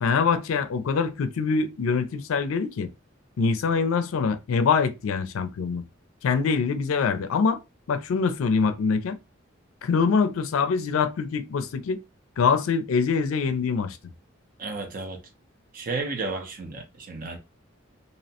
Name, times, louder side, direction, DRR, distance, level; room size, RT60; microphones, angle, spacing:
voice 1, 0.0-2.9 3.4-5.8 6.2-7.6 7.9-9.2 9.8-12.0 12.4-14.0, left 5 dB, 85° left, 0.4 m, -24 dB
voice 2, 14.6-15.2 15.7-17.4, right 3 dB, 45° right, 0.5 m, -32 dB
2.7 x 2.1 x 2.7 m
head